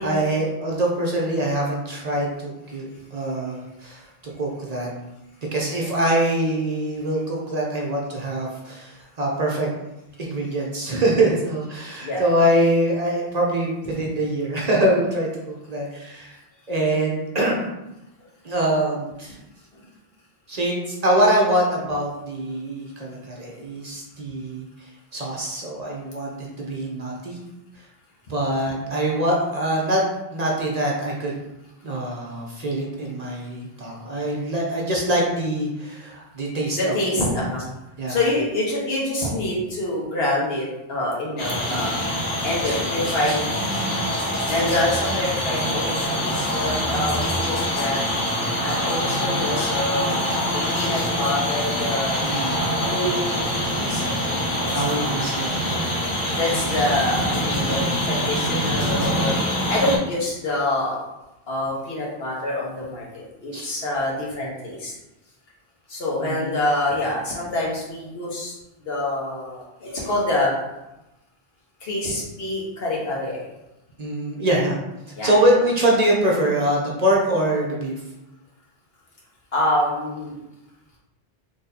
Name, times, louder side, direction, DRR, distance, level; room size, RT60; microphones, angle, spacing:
voice 1, 0.0-4.0 4.4-4.9 5.5-9.7 10.2-16.4 16.7-17.6 18.4-19.4 20.5-24.6 25.1-27.4 28.3-30.0 30.3-31.3 31.8-37.0 37.3-37.4 38.0-38.3 41.7-41.9 42.6-42.8 52.2-52.6 54.7-55.6 63.5-63.7 66.2-66.6 74.0-74.8 75.2-77.9, right 1 dB, 45° right, -2 dB, 0.7 m, -24 dB
voice 2, 36.8-37.7 38.1-42.0 42.4-43.6 44.5-48.0 48.6-52.2 52.8-55.1 55.7-55.8 56.4-59.3 59.7-61.0 61.5-64.9 65.9-68.5 68.8-70.5 71.8-73.4 75.2-75.3 79.5-80.4, left 1 dB, 75° left, -4 dB, 1.3 m, -26 dB
sound 1, 41.4-60.0, equal, 55° left, 1.0 m, -24 dB
4.1 x 3.1 x 2.7 m, 0.96 s
omnidirectional pair, 1.0 m